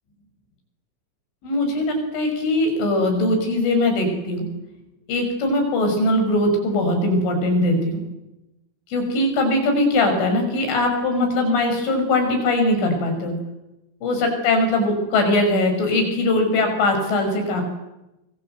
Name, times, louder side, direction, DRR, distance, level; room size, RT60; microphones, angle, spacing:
voice 1, 1.4-4.5 5.1-8.0 8.9-13.4 14.0-17.6, left 2 dB, 70° left, 5 dB, 8.8 m, -21 dB
28.5 x 24.5 x 8.1 m, 0.95 s
omnidirectional pair, 5.7 m